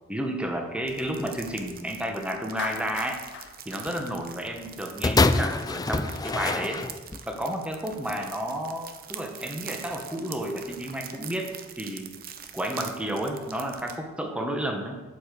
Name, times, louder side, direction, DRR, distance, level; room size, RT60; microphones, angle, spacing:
voice 1, 0.1-3.2 3.6-6.8 7.3-12.1 12.5-15.0, right 1 dB, 5° right, 3 dB, 1.3 m, -31 dB
sound 1, 0.9-14.0, right 8 dB, 45° right, 0.9 m, -44 dB
Clapping, 2.6-4.9, left 7 dB, 55° left, 0.7 m, -40 dB
sound 2, 5.0-7.3 8.1-8.2, left 3 dB, 20° left, 0.4 m, -25 dB
8.9 x 8.3 x 6.7 m, 1.2 s
head